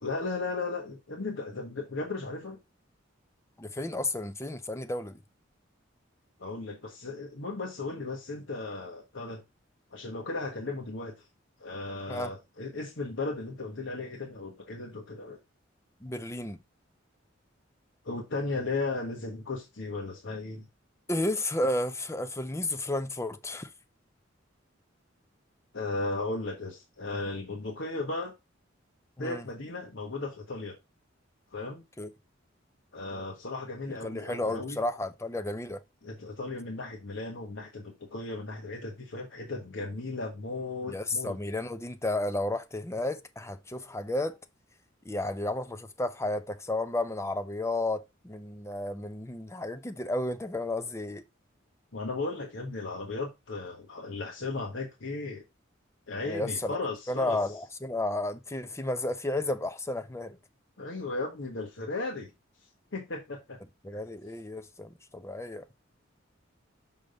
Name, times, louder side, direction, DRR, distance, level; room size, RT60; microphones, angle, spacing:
voice 1, 0.0-2.6 6.4-9.4 9.9-11.2 11.6-15.4 18.0-20.6 25.7-28.3 29.2-30.8 31.5-31.8 32.9-34.8 36.0-41.4 51.9-55.4 56.1-57.4 60.8-62.3 62.9-63.6 63.9-64.0, left 3 dB, 65° left, 1.4 m, -36 dB
voice 2, 3.6-5.2 12.1-12.3 16.0-16.6 21.1-23.7 29.2-29.5 32.0-32.1 34.0-35.8 40.9-44.4 45.0-51.2 56.2-56.8 57.1-60.4 63.8-65.7, left 2 dB, 15° left, 0.6 m, -32 dB
6.4 x 5.1 x 3.8 m
head